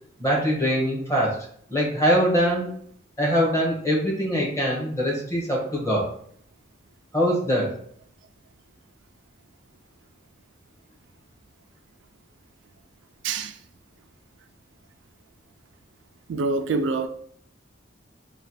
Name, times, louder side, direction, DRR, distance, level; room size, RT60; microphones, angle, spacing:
voice 1, 0.2-1.4 1.7-2.7 3.2-6.1 7.1-7.7, equal, 15° left, 1.0 m, -23 dB
voice 2, 16.3-17.1, right 3 dB, 85° right, 0.4 m, -25 dB
3.2 x 2.2 x 4.1 m
head